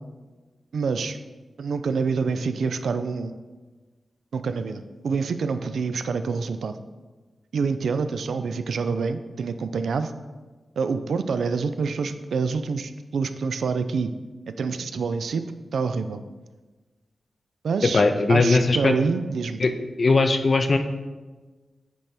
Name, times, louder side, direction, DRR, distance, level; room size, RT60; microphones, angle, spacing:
voice 1, 0.7-1.2 1.6-3.3 4.3-6.8 7.5-10.1 10.8-14.1 14.5-15.4 15.7-16.2 17.6-18.0 18.3-19.6, right 5 dB, 90° right, 10 dB, 0.4 m, -26 dB
voice 2, 17.9-18.9 19.6-19.7 20.0-20.8, left 3 dB, 40° left, 7 dB, 0.4 m, -19 dB
9.3 x 3.4 x 4.2 m, 1.3 s
wide cardioid pair, 150°, 0 cm